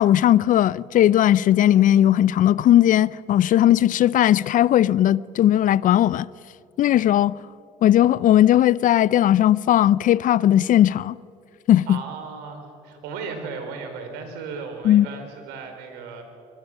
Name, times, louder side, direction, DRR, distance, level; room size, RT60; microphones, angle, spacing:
voice 1, 0.0-6.3 6.8-7.3 7.8-11.2 11.7-12.0 14.8-15.1, left 12 dB, 50° left, 0.5 m, -17 dB
voice 2, 11.9-16.2, right 5 dB, 75° right, 4.2 m, -35 dB
24.5 x 23.0 x 6.2 m
supercardioid pair, 75°, 17 cm